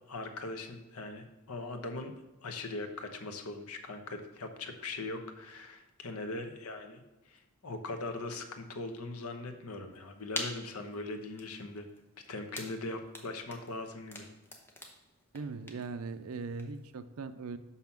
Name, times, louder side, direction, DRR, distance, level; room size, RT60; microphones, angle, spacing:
voice 1, 0.1-2.1 2.4-11.9 12.3-14.3, left 2 dB, 85° left, 6 dB, 0.9 m, -40 dB
sound 1, 9.9-16.9, left 1 dB, 10° left, 0.9 m, -46 dB
voice 2, 15.3-17.6, right 4 dB, 75° right, 11 dB, 0.5 m, -40 dB
5.8 x 5.6 x 5.8 m, 1.0 s
head